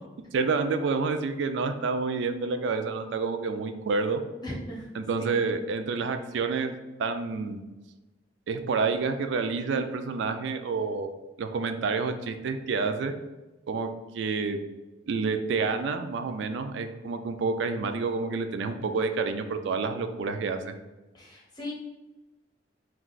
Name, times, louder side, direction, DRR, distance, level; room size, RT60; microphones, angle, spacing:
voice 1, 0.3-4.2 5.0-7.6 8.5-11.1 11.4-13.1 13.7-14.6 15.1-20.7, right 4 dB, 65° right, 8 dB, 0.3 m, -29 dB
voice 2, 4.4-4.9 5.2-5.4 21.1-21.7, equal, 20° left, -3 dB, 0.8 m, -37 dB
2.4 x 2.3 x 3.8 m, 1.1 s
head